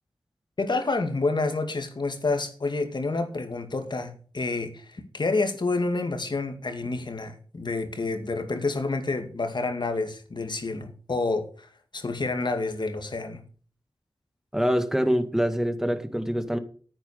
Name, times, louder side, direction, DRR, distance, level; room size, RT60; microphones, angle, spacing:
voice 1, 0.6-11.5 11.9-13.4, left 3 dB, 60° left, 2.2 m, -28 dB
voice 2, 14.5-16.6, equal, 5° right, 1.8 m, -25 dB
9.6 x 9.0 x 6.8 m
cardioid pair, 50°, 9 cm